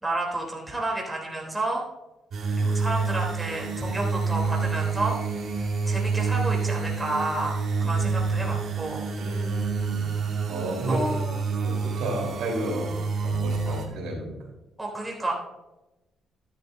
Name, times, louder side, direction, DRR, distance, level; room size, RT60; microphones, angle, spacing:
voice 1, 0.0-1.8 2.5-5.2 5.6-9.1 10.2-11.4 13.7-13.8 14.8-15.3, right 2 dB, 10° right, -1 dB, 3.3 m, -31 dB
sound 1, 2.3-13.8, right 4 dB, 60° right, 2.0 m, -28 dB
voice 2, 9.2-10.1 10.5-11.1 11.6-14.3, right 1 dB, 80° right, -1 dB, 3.8 m, -32 dB
12.5 x 11.0 x 2.7 m, 1.0 s
cardioid pair, 90°, 0 cm